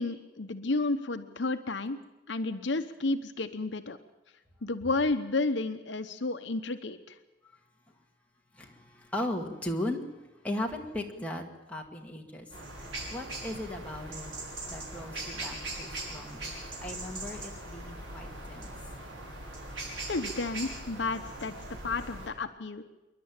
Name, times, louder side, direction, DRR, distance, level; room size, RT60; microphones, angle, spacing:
voice 1, 0.0-2.0 2.3-4.0 4.6-7.2 20.1-21.5 21.8-22.8, left 3 dB, 65° left, 8 dB, 0.9 m, -31 dB
voice 2, 8.5-10.1 10.4-11.4 11.7-12.5 13.1-14.3 14.7-16.5 16.8-18.8, left 1 dB, 5° left, 0 dB, 2.1 m, -37 dB
sound 1, 12.5-22.3, right 2 dB, 80° right, 5.7 m, -40 dB
27.0 x 11.5 x 8.9 m, 1.1 s
head